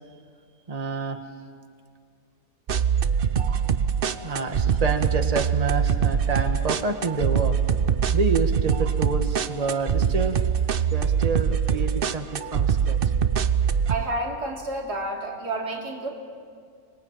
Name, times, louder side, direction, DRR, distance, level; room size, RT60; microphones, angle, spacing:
voice 1, 0.7-1.2 4.2-7.6 8.1-10.4 10.9-13.0, right 4 dB, 25° right, 6 dB, 1.5 m, -28 dB
sound 1, 2.7-14.0, right 7 dB, 45° right, 0.8 m, -23 dB
voice 2, 13.9-16.1, right 1 dB, 90° right, 0 dB, 3.6 m, -30 dB
25.0 x 22.0 x 8.9 m, 2.2 s
omnidirectional pair, 1.7 m